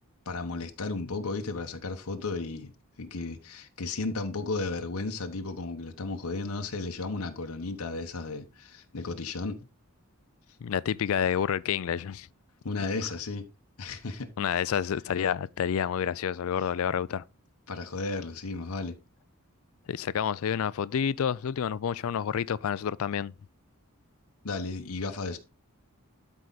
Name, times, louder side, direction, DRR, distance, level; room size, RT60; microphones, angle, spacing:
voice 1, 0.3-2.7 3.0-9.7 12.6-13.5 13.8-14.3 16.6-16.7 17.7-19.0 24.4-25.4, left 3 dB, 85° left, 1.0 m, -34 dB
voice 2, 10.6-12.3 14.4-17.2 19.9-23.3, left 8 dB, 70° left, 0.4 m, -29 dB
12.0 x 4.9 x 4.0 m
head